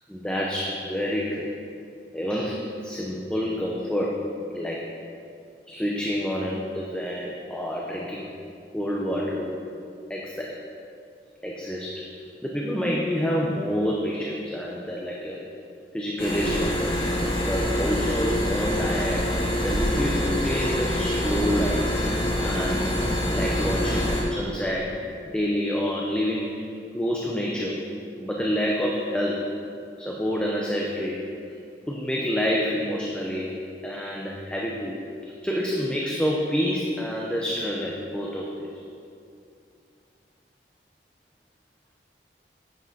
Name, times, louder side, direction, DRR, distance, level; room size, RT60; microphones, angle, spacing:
voice 1, 0.1-1.5 2.1-4.2 4.5-4.8 5.7-8.3 8.7-9.6 10.1-10.6 11.4-12.1 12.4-15.4 15.9-17.0 17.3-21.9 22.4-23.0 23.3-25.0 25.2-26.7 26.9-27.8 28.2-29.5 30.0-31.2 31.9-35.0 35.2-38.8, equal, 5° left, -3 dB, 0.7 m, -28 dB
sound 1, 16.2-24.2, equal, 30° left, 1.9 m, -25 dB
10.0 x 8.8 x 4.1 m, 2.5 s
head